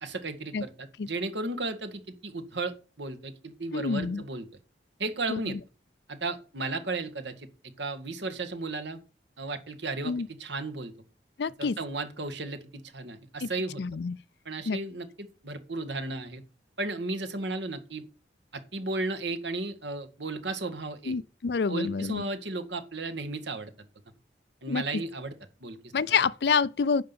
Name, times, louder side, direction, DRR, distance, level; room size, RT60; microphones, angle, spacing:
voice 1, 0.0-4.5 5.0-5.6 6.1-7.5 7.8-9.0 9.4-10.1 10.4-10.9 11.6-13.8 14.5-16.4 16.8-18.0 18.5-21.1 21.7-23.7 24.6-25.3 25.6-25.8 26.1-26.2, right 2 dB, 80° right, 1.8 m, -34 dB
voice 2, 3.7-4.2 5.3-5.6 10.0-10.3 11.4-11.8 13.4-13.5 13.8-14.2 14.7-14.8 21.1-22.2 24.7-24.8 25.9-27.0, left 5 dB, 65° left, 0.4 m, -27 dB
10.0 x 5.8 x 7.0 m
head